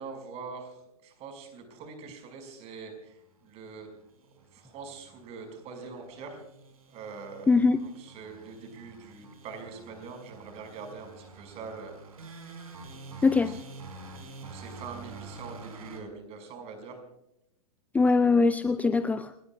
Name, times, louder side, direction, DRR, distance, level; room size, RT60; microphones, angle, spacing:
voice 1, 0.0-3.9 4.5-6.4 6.9-7.5 7.8-12.0 12.3-12.4 13.3-13.6 14.0-14.1 14.4-17.0, right 5 dB, 35° right, 5 dB, 5.5 m, -43 dB
sound 1, 3.6-16.0, right 3 dB, 70° right, 4.8 m, -48 dB
voice 2, 7.5-7.8 13.2-13.5 17.9-19.3, left 4 dB, 10° left, 12 dB, 0.5 m, -22 dB
29.5 x 18.5 x 2.3 m, 0.79 s
figure-of-eight pair, 105°, 19 cm